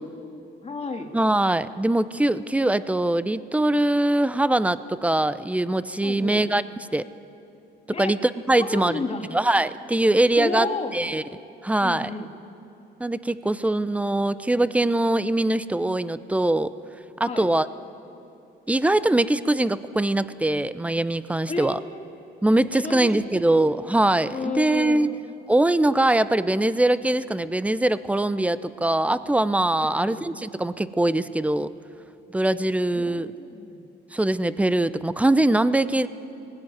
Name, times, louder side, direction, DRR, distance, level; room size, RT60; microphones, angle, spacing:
voice 1, 0.0-1.1 6.0-6.4 7.9-8.1 8.6-9.3 10.4-11.0 11.8-12.3 17.2-17.5 21.5-22.0 22.7-23.7 24.3-25.1 29.8-30.2 32.9-33.8, left 4 dB, 30° left, 1 dB, 2.3 m, -32 dB
voice 2, 1.1-6.6 6.9-7.0 7.9-9.0 9.3-10.7 10.9-11.2 11.6-12.1 13.0-16.7 17.2-17.7 18.7-21.8 22.4-25.1 25.5-31.7 32.3-33.3 34.1-36.1, right 1 dB, 5° right, 15 dB, 0.6 m, -22 dB
19.5 x 16.5 x 9.4 m, 2.8 s
cardioid pair, 90°, 20 cm